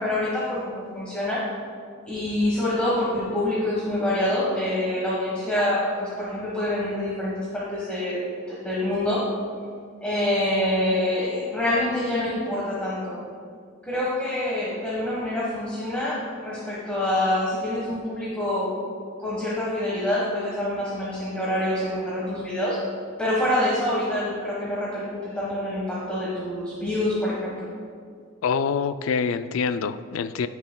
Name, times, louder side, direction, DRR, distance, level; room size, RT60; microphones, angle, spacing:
voice 1, 0.0-1.4 2.1-8.2 8.5-9.2 10.0-13.2 13.8-18.7 19.2-22.8 23.2-27.7, left 1 dB, 5° left, -7 dB, 1.3 m, -26 dB
voice 2, 28.4-30.5, left 6 dB, 85° left, 12 dB, 0.4 m, -25 dB
15.0 x 6.2 x 2.2 m, 2.2 s
head